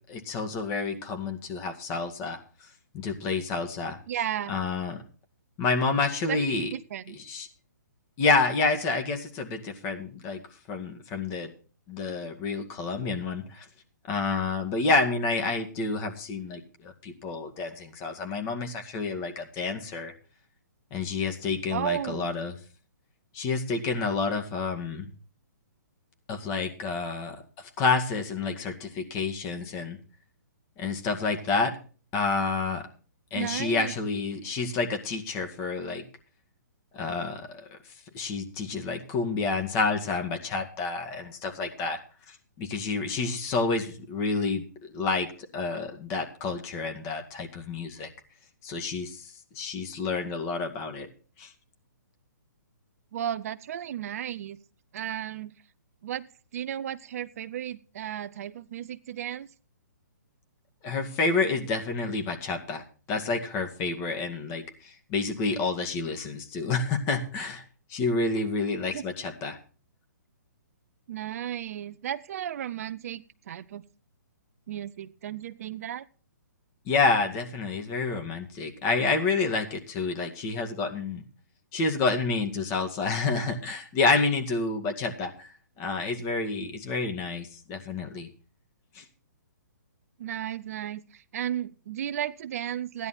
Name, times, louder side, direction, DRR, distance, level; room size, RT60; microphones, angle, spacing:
voice 1, 0.1-4.0 4.5-5.0 5.6-6.7 7.1-7.5 8.2-10.4 10.7-11.5 11.9-13.7 14.1-20.1 20.9-22.6 23.3-25.1 26.3-30.0 30.8-31.8 32.1-32.9 33.3-36.0 36.9-42.0 42.3-48.1 48.6-51.1 51.4-51.5 60.8-67.6 67.9-69.6 76.9-81.2 81.7-85.5 85.8-88.3 88.9-89.1, left 4 dB, 25° left, 5 dB, 2.0 m, -29 dB
voice 2, 4.1-4.5 6.3-7.2 21.7-22.3 33.3-33.9 53.1-54.6 54.9-55.5 56.0-59.5 68.9-69.0 71.1-73.8 74.7-76.1 90.2-93.1, right 10 dB, 50° right, 14 dB, 0.6 m, -34 dB
15.5 x 10.5 x 4.3 m, 0.38 s
hypercardioid pair, 145°, 10 cm